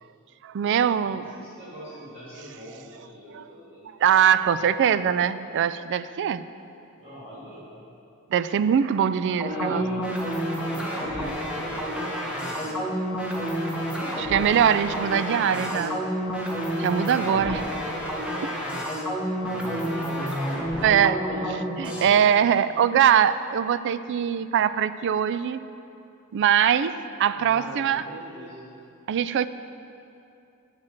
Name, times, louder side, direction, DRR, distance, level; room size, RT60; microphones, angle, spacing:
voice 1, 0.4-1.3 3.3-3.4 4.0-6.4 8.3-9.8 14.3-16.0 16.8-17.6 20.8-25.6 26.3-28.0 29.1-29.5, right 8 dB, 55° right, 14 dB, 0.3 m, -22 dB
voice 2, 1.1-4.0 4.3-4.6 7.0-7.7 9.4-10.0 10.6-13.6 14.0-14.3 17.1-17.8 19.3-20.5 21.8-22.6 27.3-28.7, equal, 30° right, -12 dB, 2.6 m, -42 dB
sound 1, 9.4-22.0, equal, 5° right, 1.3 m, -29 dB
7.7 x 7.6 x 7.3 m, 2.7 s
head